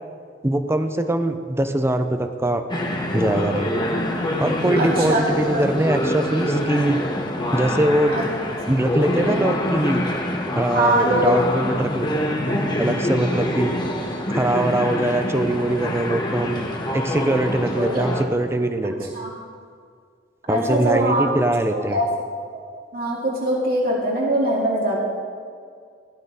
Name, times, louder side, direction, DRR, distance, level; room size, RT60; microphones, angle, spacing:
voice 1, 0.4-2.6 3.1-3.8 4.4-7.0 7.5-8.2 8.7-10.0 10.5-12.1 12.8-13.7 14.3-16.7 16.9-19.2 20.5-22.0, right 1 dB, 15° right, 8 dB, 0.8 m, -22 dB
sound 1, 2.7-18.2, left 1 dB, 25° left, 1.5 m, -25 dB
voice 2, 4.8-5.2 5.5-5.6 8.1-8.2 9.1-9.4 10.7-11.3 12.5-12.6 12.9-13.4 17.7-18.1 19.2-19.3 20.5-21.3 21.7-22.0 22.9-25.0, right 1 dB, 55° right, -3 dB, 2.5 m, -22 dB
17.0 x 12.0 x 4.1 m, 2.1 s
head